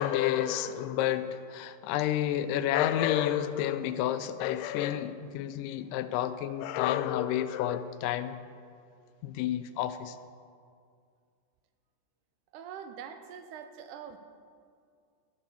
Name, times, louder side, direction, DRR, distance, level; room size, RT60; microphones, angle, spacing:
voice 1, 0.0-8.4 9.2-10.2, left 11 dB, 85° left, 12 dB, 2.2 m, -30 dB
voice 2, 12.5-14.2, right 8 dB, 80° right, 8 dB, 2.1 m, -44 dB
12.0 x 7.4 x 6.9 m, 2.2 s
omnidirectional pair, 3.7 m